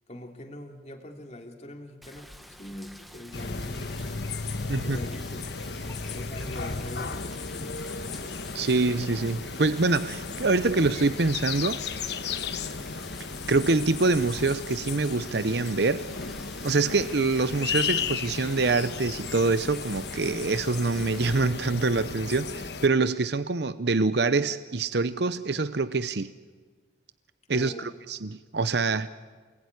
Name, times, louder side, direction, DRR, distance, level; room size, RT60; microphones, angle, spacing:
voice 1, 0.1-4.2 4.8-5.5 6.1-8.4 27.5-27.9, left 1 dB, 35° left, 3 dB, 3.0 m, -43 dB
Rain, 2.0-21.3, equal, ahead, 1.4 m, -48 dB
sound 1, 3.3-22.9, left 5 dB, 60° left, 1.2 m, -35 dB
voice 2, 8.5-11.8 13.5-16.1 16.6-26.3 27.5-29.1, right 3 dB, 60° right, 13 dB, 0.8 m, -25 dB
28.5 x 20.0 x 9.7 m, 1.5 s
head